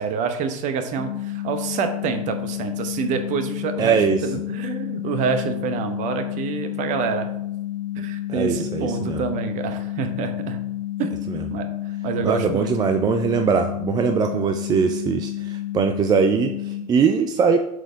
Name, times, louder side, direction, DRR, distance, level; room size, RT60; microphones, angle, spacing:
voice 1, 0.0-7.3 8.0-10.6 11.0-11.1 11.5-11.7 12.0-12.7, right 6 dB, 40° right, 8 dB, 0.9 m, -27 dB
sound 1, 1.0-16.8, left 14 dB, 15° left, 1.2 m, -30 dB
voice 2, 3.8-4.2 8.3-9.2 11.3-11.4 12.2-17.6, right 6 dB, 20° right, 6 dB, 0.4 m, -21 dB
7.8 x 4.1 x 3.8 m, 0.84 s
figure-of-eight pair, 80°, 20 cm